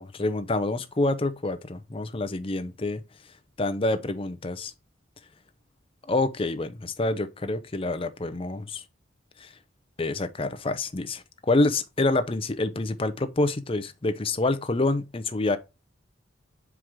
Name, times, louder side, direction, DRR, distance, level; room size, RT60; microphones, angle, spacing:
voice 1, 0.0-3.0 3.6-4.7 6.1-8.8 9.4-9.5 10.0-15.6, left 2 dB, 30° left, 0.6 m, -27 dB
6.0 x 4.7 x 3.6 m
head